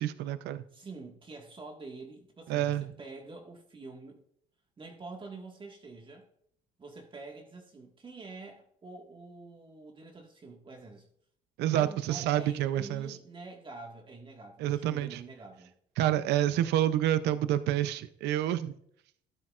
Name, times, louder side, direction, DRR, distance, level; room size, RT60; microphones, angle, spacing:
voice 1, 0.0-0.6 2.5-2.9 11.6-13.2 14.6-15.2 16.0-18.7, right 12 dB, 80° right, 12 dB, 0.6 m, -28 dB
voice 2, 0.7-4.2 4.8-6.3 6.8-11.1 11.6-15.7, right 3 dB, 30° right, 1 dB, 1.7 m, -46 dB
13.0 x 12.0 x 2.5 m, 0.66 s
cardioid pair, 110°, 17 cm